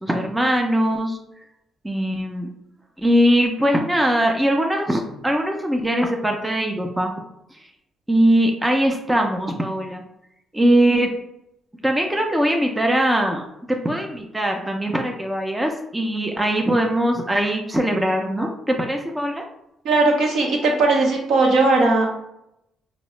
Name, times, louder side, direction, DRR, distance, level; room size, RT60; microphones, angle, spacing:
voice 1, 0.0-1.2 1.8-2.5 3.0-7.1 8.1-10.0 10.5-11.1 11.8-19.4, right 1 dB, 10° right, 2 dB, 0.5 m, -21 dB
voice 2, 19.8-22.1, right 3 dB, 75° right, 0 dB, 0.8 m, -18 dB
3.5 x 2.0 x 3.1 m, 0.81 s
cardioid pair, 90°, 0 cm